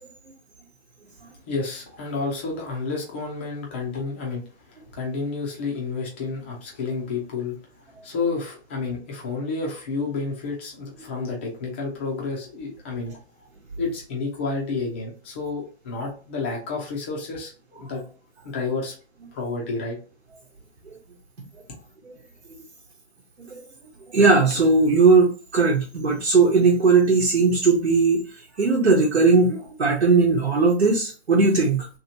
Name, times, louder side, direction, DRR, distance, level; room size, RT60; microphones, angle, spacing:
voice 1, 1.5-7.6 8.0-13.2 13.8-17.5 17.8-18.0 18.4-18.9 19.3-20.0, left 4 dB, 10° left, 0.3 m, -30 dB
voice 2, 24.1-28.2 28.6-31.9, right 4 dB, 85° right, 1.1 m, -18 dB
2.9 x 2.9 x 2.7 m
hypercardioid pair, 135°, 33 cm